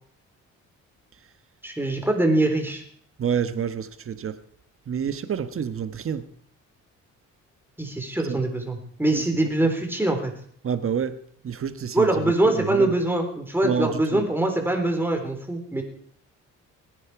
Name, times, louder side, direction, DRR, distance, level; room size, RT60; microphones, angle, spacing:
voice 1, 1.6-2.8 7.8-10.3 11.9-15.8, right 2 dB, 5° right, 3 dB, 3.7 m, -23 dB
voice 2, 3.2-4.4 4.9-6.3 8.2-8.4 9.1-9.2 10.6-11.2 11.4-12.9 13.6-14.2, right 7 dB, 45° right, 11 dB, 1.4 m, -28 dB
19.5 x 10.0 x 4.8 m, 0.63 s
cardioid pair, 90°, 30 cm